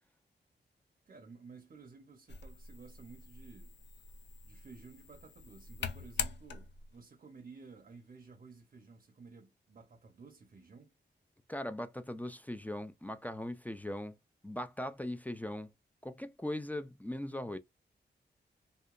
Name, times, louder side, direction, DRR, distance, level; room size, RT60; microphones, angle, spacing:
voice 1, 1.1-3.8 4.4-10.9, right 4 dB, 45° right, 0.6 m, -54 dB
sound 1, 2.3-7.0, left 6 dB, 75° left, 0.4 m, -43 dB
voice 2, 11.5-14.2 14.4-15.7 16.0-17.6, left 1 dB, 10° left, 0.3 m, -39 dB
2.8 x 2.1 x 2.3 m
cardioid pair, 80°, 18 cm